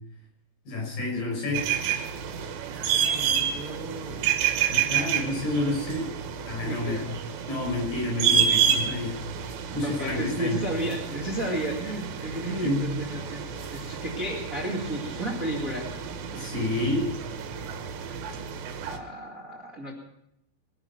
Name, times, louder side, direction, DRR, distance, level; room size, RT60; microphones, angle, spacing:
voice 1, 0.7-1.6 4.7-6.1 6.5-7.0 7.5-9.2 9.7-10.6 12.2-12.4 12.6-12.9 16.3-17.1, left 2 dB, 60° left, 0 dB, 7.6 m, -29 dB
sound 1, 1.5-19.0, right 8 dB, 80° right, 3.5 m, -29 dB
voice 2, 2.9-4.2 6.7-7.1 9.8-15.9 18.8-19.9, right 1 dB, 30° right, -1 dB, 1.7 m, -33 dB
21.0 x 11.0 x 5.9 m, 0.78 s
omnidirectional pair, 5.0 m